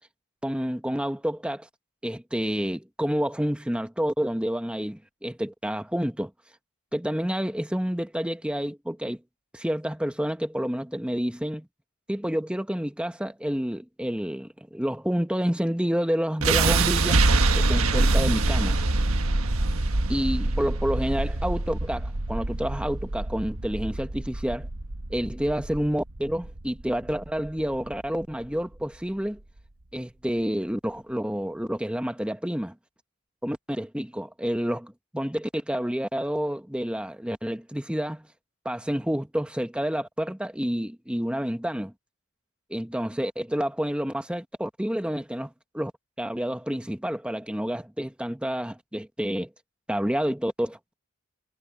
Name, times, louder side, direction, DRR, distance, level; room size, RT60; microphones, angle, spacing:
voice 1, 0.4-1.7 2.0-6.3 6.9-9.2 9.5-11.7 12.1-17.2 17.5-18.8 20.1-24.7 25.1-29.4 29.9-32.7 33.4-38.3 38.6-41.9 42.7-45.9 46.2-49.5 49.9-50.8, equal, 5° right, 1.0 m, -29 dB
sound 1, 16.4-28.5, right 2 dB, 80° right, 1.4 m, -25 dB
head